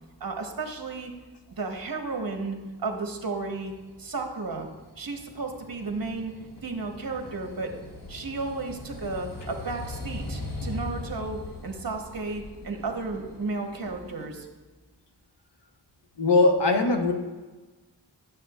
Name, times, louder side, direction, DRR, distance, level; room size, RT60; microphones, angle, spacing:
voice 1, 0.2-1.1 1.5-3.7 4.0-4.7 5.0-6.3 6.6-7.7 8.1-14.5, right 3 dB, 55° right, 3 dB, 1.0 m, -33 dB
sound 1, 2.9-14.2, left 2 dB, 50° left, 1.3 m, -40 dB
voice 2, 16.2-17.1, left 3 dB, 75° left, 4 dB, 0.8 m, -20 dB
9.3 x 6.8 x 2.3 m, 1.3 s
wide cardioid pair, 40°, 43 cm